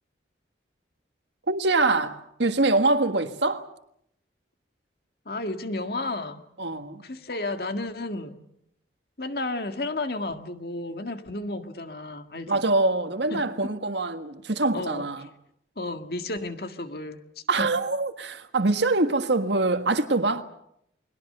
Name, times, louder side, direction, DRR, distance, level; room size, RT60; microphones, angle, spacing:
voice 1, 1.5-3.7 6.6-7.0 12.5-15.2 17.5-20.4, right 2 dB, 70° right, 1.7 m, -24 dB
voice 2, 5.3-6.4 7.0-8.4 9.2-12.6 13.3-13.7 14.7-15.1 15.8-17.7, left 2 dB, 55° left, 1.8 m, -33 dB
29.5 x 21.5 x 6.8 m
head